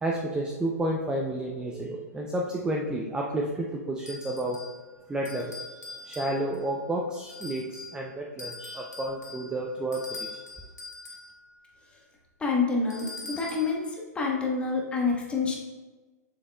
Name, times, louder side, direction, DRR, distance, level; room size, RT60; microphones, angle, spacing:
voice 1, 0.0-4.6 5.1-10.4, right 1 dB, 10° right, -1 dB, 0.5 m, -31 dB
sound 1, 4.1-4.8 5.2-6.7 7.3-8.0 8.4-11.3 12.9-13.8, left 3 dB, 90° left, 2.0 m, -42 dB
voice 2, 12.4-13.8 14.1-15.6, left 4 dB, 10° left, -1 dB, 1.2 m, -27 dB
7.2 x 6.5 x 2.3 m, 1.3 s
hypercardioid pair, 130°, 9 cm